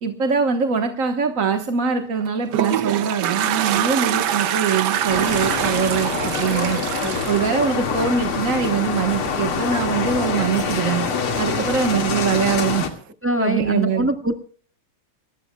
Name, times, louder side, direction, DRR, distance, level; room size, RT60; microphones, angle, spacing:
voice 1, 0.0-6.8 7.3-11.0 11.4-12.9 13.4-14.1, right 6 dB, 45° right, 5 dB, 1.4 m, -22 dB
Toilet flush, 2.2-8.5, right 10 dB, 60° right, 1.3 m, -24 dB
sound 1, 5.1-12.9, left 5 dB, 85° left, 2.9 m, -25 dB
voice 2, 13.2-14.3, right 1 dB, 5° right, 7 dB, 1.2 m, -23 dB
29.5 x 14.5 x 2.3 m, 0.42 s
omnidirectional pair, 2.3 m